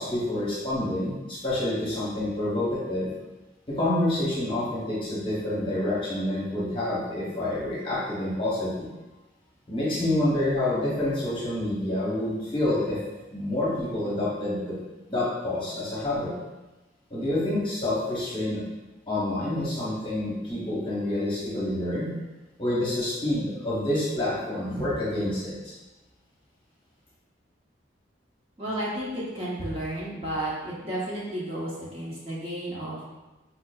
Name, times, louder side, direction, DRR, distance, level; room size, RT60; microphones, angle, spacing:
voice 1, 0.0-3.1 3.7-8.9 9.7-13.0 13.3-14.8 15.1-16.3 17.1-18.6 19.1-22.1 22.6-25.5, left 1 dB, 25° left, -7 dB, 0.9 m, -28 dB
voice 2, 28.6-33.0, right 1 dB, 30° right, -7 dB, 0.6 m, -32 dB
4.4 x 2.4 x 2.2 m, 1.1 s
head